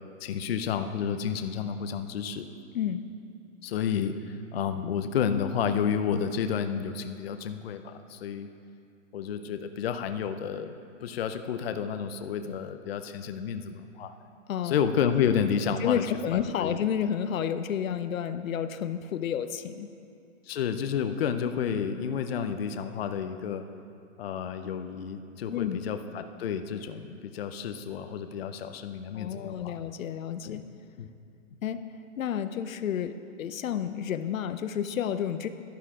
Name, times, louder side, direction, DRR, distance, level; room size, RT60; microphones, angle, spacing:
voice 1, 0.2-2.5 3.6-8.5 9.1-14.1 14.6-16.0 16.3-16.8 20.5-23.6 24.2-29.8 30.4-30.6 31.0-31.1, left 7 dB, 50° left, 8 dB, 0.6 m, -30 dB
voice 2, 15.8-19.9 25.5-25.8 29.1-30.6 31.6-31.8 32.2-35.5, left 9 dB, 85° left, 11 dB, 0.7 m, -30 dB
11.5 x 11.5 x 3.7 m, 2.5 s
hypercardioid pair, 165°, 39 cm